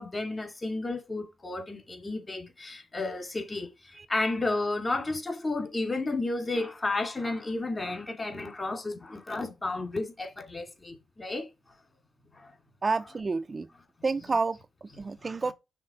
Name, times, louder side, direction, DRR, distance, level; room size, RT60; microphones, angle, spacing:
voice 1, 0.0-11.5 12.4-12.5, left 2 dB, 30° left, 2.3 m, -32 dB
voice 2, 12.8-13.7 14.0-15.5, right 4 dB, 40° right, 0.5 m, -30 dB
5.9 x 3.7 x 4.8 m
cardioid pair, 60°, 0 cm